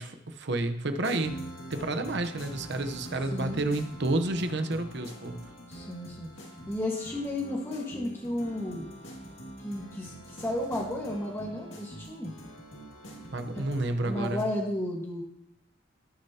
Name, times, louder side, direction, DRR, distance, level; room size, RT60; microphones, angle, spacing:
voice 1, 0.0-1.4 1.7-5.5 13.3-14.4, right 2 dB, 60° right, 8 dB, 0.9 m, -30 dB
sound 1, 1.0-14.4, right 1 dB, 80° left, 2.1 m, -44 dB
voice 2, 3.3-3.6 5.7-6.3 6.7-8.9 9.6-12.3 13.5-13.7 14.1-15.2, left 1 dB, 15° left, -3 dB, 1.5 m, -33 dB
18.5 x 6.7 x 2.9 m, 0.76 s
head